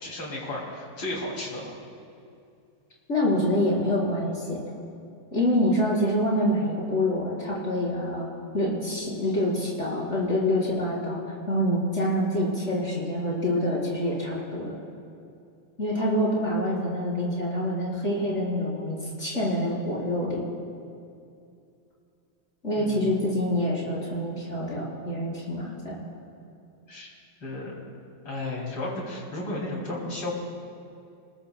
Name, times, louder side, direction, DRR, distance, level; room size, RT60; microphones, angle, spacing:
voice 1, 0.0-1.8 22.8-23.3 26.9-27.1 27.4-27.8 28.2-30.3, left 2 dB, 70° left, -2 dB, 3.9 m, -34 dB
voice 2, 3.1-4.6 5.3-8.3 8.5-11.2 11.5-14.8 15.8-20.4 22.6-26.0, left 1 dB, 35° left, -6 dB, 5.1 m, -26 dB
28.5 x 20.5 x 2.3 m, 2.5 s
omnidirectional pair, 2.3 m